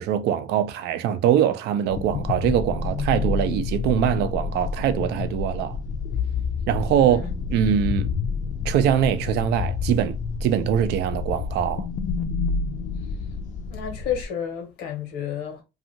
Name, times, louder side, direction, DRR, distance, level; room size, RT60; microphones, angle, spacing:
voice 1, 0.0-5.8 6.7-7.2 7.5-8.2 8.6-11.9, right 9 dB, 80° right, 0.5 m, -23 dB
sound 1, 1.9-14.3, left 5 dB, 50° left, 0.4 m, -29 dB
voice 2, 6.9-7.3 13.7-15.6, left 8 dB, 85° left, 1.0 m, -31 dB
2.6 x 2.4 x 2.8 m
cardioid pair, 110°, 17 cm